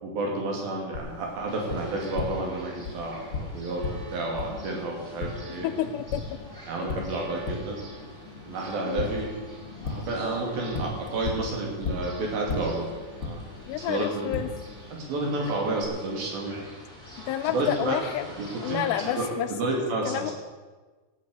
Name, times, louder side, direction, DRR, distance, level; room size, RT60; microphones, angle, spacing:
voice 1, 0.0-5.7 6.7-7.8 8.5-9.3 9.8-12.9 13.2-13.4 13.8-14.3 14.9-16.6 17.4-18.0 18.4-20.3, right 2 dB, 60° right, -1 dB, 4.3 m, -30 dB
Tap, 0.9-15.9, left 4 dB, 60° left, 1.2 m, -37 dB
sound 1, 1.5-19.3, right 1 dB, 15° right, 3.4 m, -46 dB
voice 2, 5.6-6.2 8.8-9.1 13.7-14.5 17.3-18.3 18.6-19.5 20.1-20.3, left 12 dB, 85° left, 7 dB, 2.6 m, -29 dB
16.0 x 8.7 x 6.6 m, 1.3 s
omnidirectional pair, 4.9 m